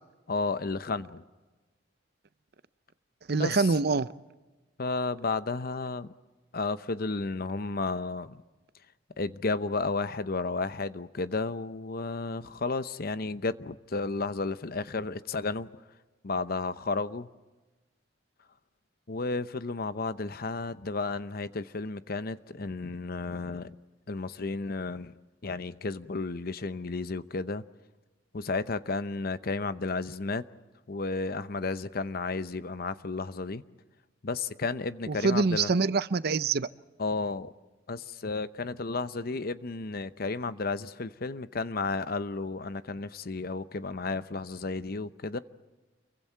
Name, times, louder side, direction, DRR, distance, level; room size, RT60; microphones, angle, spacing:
voice 1, 0.3-1.2 3.4-3.5 4.8-6.1 6.5-8.4 9.2-15.7 16.2-17.3 19.1-23.8 24.1-25.1 25.4-27.6 28.3-30.4 30.9-33.6 34.2-35.7 37.0-37.5 37.9-45.4, left 3 dB, 55° left, 0.8 m, -32 dB
voice 2, 3.3-4.1 35.1-36.7, right 4 dB, 60° right, 0.6 m, -25 dB
29.5 x 23.5 x 4.6 m
head